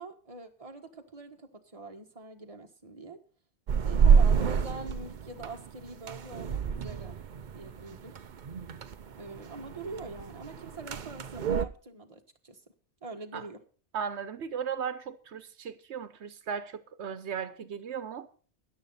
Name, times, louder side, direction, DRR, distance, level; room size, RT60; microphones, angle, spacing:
voice 1, 0.0-3.2 3.8-7.2 7.5-8.2 9.2-12.6 13.0-13.6, right 3 dB, 30° right, 1.6 m, -44 dB
sound 1, 3.7-11.6, right 6 dB, 50° right, 0.7 m, -28 dB
voice 2, 13.9-18.3, right 7 dB, 85° right, 1.2 m, -36 dB
13.5 x 10.5 x 4.1 m
omnidirectional pair, 1.1 m